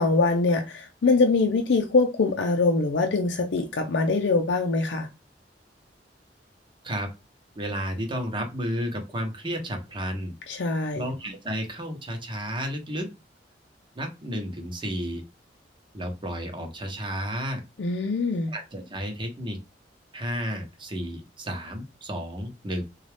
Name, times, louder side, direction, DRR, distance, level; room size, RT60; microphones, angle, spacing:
voice 1, 0.0-5.1 10.5-11.1 17.8-18.5, left 3 dB, 85° left, 0.5 m, -23 dB
voice 2, 7.6-10.3 10.9-13.1 13.9-15.2 15.9-17.6 18.5-19.6 20.1-22.8, equal, 30° right, 0.9 m, -32 dB
3.8 x 2.3 x 3.4 m
head